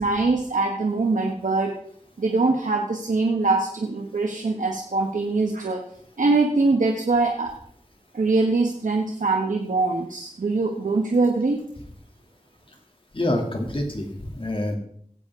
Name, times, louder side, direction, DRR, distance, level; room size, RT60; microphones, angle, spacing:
voice 1, 0.0-1.7 2.2-5.9 6.2-7.5 8.1-11.6, right 3 dB, 85° right, 2 dB, 1.1 m, -23 dB
voice 2, 13.1-14.8, left 1 dB, 40° left, 2 dB, 2.4 m, -26 dB
15.5 x 8.4 x 3.6 m, 0.63 s
wide cardioid pair, 50°, 13 cm